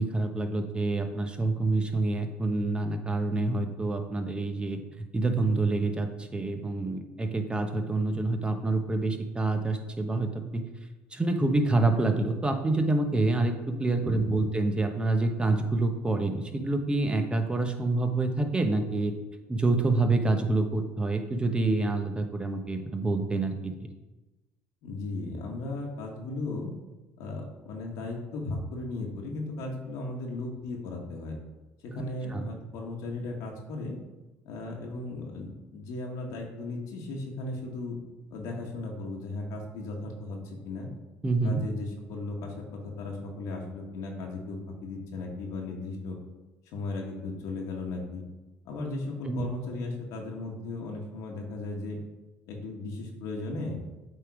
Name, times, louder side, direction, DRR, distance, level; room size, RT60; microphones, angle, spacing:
voice 1, 0.0-4.8 5.1-10.6 11.1-19.1 19.5-23.7 31.9-32.5 41.2-41.6 49.2-49.5, right 2 dB, 15° right, 5 dB, 1.0 m, -27 dB
voice 2, 14.0-14.4 24.8-26.7 27.2-31.4 31.8-34.0 34.4-38.0 38.3-40.9 41.4-46.2 46.7-48.2 48.6-52.0 52.5-53.8, left 2 dB, 75° left, 0 dB, 1.3 m, -36 dB
8.1 x 3.8 x 4.8 m, 1.1 s
supercardioid pair, 90°, 6 cm